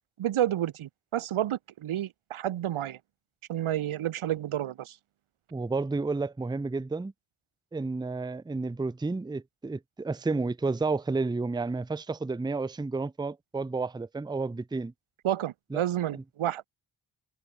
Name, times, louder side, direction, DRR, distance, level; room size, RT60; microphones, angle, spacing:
voice 1, 0.2-3.0 3.5-5.0 15.2-16.7, right 12 dB, 80° right, 0.8 m, -30 dB
voice 2, 5.5-7.1 7.7-14.9 15.7-15.8 16.1-16.2, right 3 dB, 10° right, 0.5 m, -31 dB
wide cardioid pair, 105°, 49 cm